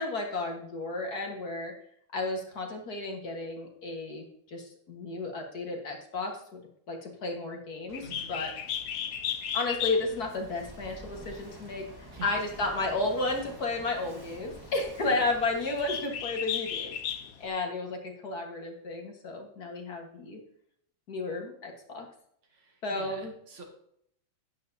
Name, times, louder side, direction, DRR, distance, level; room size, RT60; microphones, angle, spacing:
voice 1, 0.0-1.7 2.1-6.6 6.9-8.5 9.5-11.9 12.2-17.0 17.4-20.4 21.1-22.1 22.8-23.3, left 2 dB, 50° left, 2 dB, 2.0 m, -33 dB
Bird, 7.9-17.5, left 9 dB, 70° left, 0.8 m, -37 dB
voice 2, 8.0-8.3 12.1-12.3 15.0-15.3 22.5-23.6, right 2 dB, 90° right, 1 dB, 3.0 m, -46 dB
Walk footsteps / Wind / Waves surf, 9.6-16.2, right 1 dB, 15° right, 0.8 m, -49 dB
11.0 x 9.2 x 2.8 m, 0.69 s
omnidirectional pair, 2.2 m